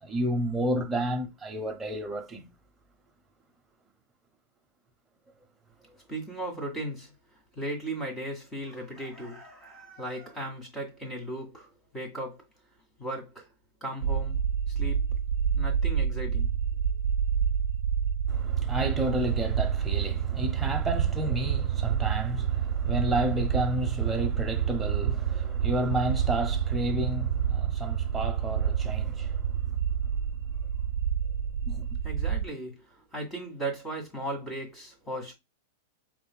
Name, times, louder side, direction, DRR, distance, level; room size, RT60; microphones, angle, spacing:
voice 1, 0.0-2.5 5.9-6.0 18.3-29.8 31.7-31.9, right 1 dB, 10° right, 0.9 m, -31 dB
voice 2, 6.1-7.1 7.5-12.4 13.0-13.5 13.8-14.4 14.8-15.1 15.5-16.5 32.0-35.3, right 1 dB, 15° left, 1.9 m, -37 dB
sound 1, 14.0-32.4, right 8 dB, 75° right, 0.3 m, -28 dB
4.9 x 3.4 x 2.2 m
supercardioid pair, 145°, 0 cm